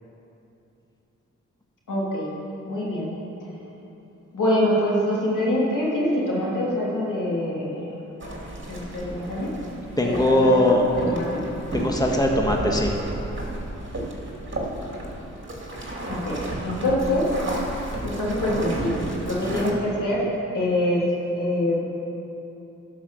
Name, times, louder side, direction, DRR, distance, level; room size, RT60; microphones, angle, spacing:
voice 1, 1.9-2.3 2.6-3.1 3.6-3.7 4.3-7.9 8.7-9.5 10.0-10.6 10.9-11.4 16.1-17.2 18.0-21.1 21.4-21.8, left 1 dB, 80° left, -5 dB, 2.8 m, -25 dB
sound 1, 8.2-19.7, right 1 dB, 40° right, 2.7 m, -32 dB
voice 2, 10.0-10.8 11.7-12.9 19.5-19.6, left 1 dB, 10° left, 0 dB, 1.5 m, -20 dB
11.5 x 6.0 x 6.9 m, 2.9 s
supercardioid pair, 40°, 31 cm